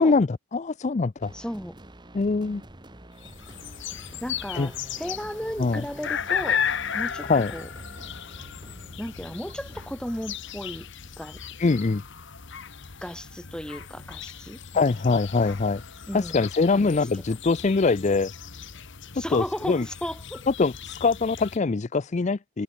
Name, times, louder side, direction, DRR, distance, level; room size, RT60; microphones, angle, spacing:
voice 1, 0.0-1.3 2.1-2.6 4.5-4.7 5.6-5.8 7.3-7.5 11.6-12.0 14.7-15.8 16.1-18.3 19.1-19.9 20.5-22.6, left 4 dB, 35° left, 0.4 m, -23 dB
sound 1, 1.2-9.9, right 1 dB, 20° right, 1.5 m, -48 dB
voice 2, 1.3-1.8 4.2-6.6 6.9-7.7 9.0-10.9 11.2-11.4 13.0-15.0 16.1-16.4 16.7-16.9 19.1-20.4, equal, 5° left, 1.6 m, -35 dB
sound 2, 3.2-21.6, left 8 dB, 60° left, 1.5 m, -35 dB
head